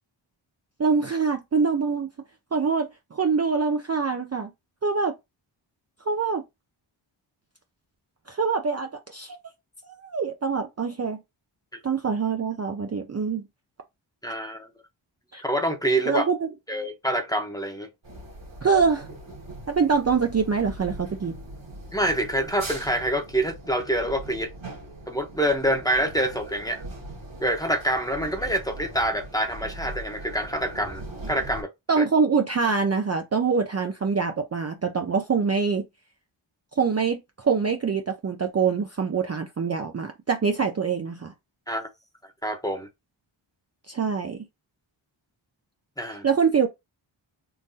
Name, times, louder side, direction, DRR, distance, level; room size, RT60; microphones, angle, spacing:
voice 1, 0.8-2.1 2.5-4.5 4.8-5.1 6.1-6.4 8.3-9.4 9.8-11.2 11.8-13.5 15.3-15.4 16.1-16.5 18.6-19.1 19.7-21.3 31.9-35.9 36.8-41.3 43.9-44.4 46.2-46.7, right 5 dB, 35° right, 0.4 m, -24 dB
voice 2, 14.2-14.7 15.4-16.2 16.7-17.9 21.9-24.5 25.1-26.8 27.4-31.0 31.3-31.7 32.0-32.1 41.7-41.9 42.4-42.9 46.0-46.2, right 1 dB, 10° left, 0.8 m, -26 dB
sound 1, 18.0-31.6, right 1 dB, 70° right, 1.6 m, -40 dB
3.7 x 2.6 x 2.7 m
wide cardioid pair, 85°, 48 cm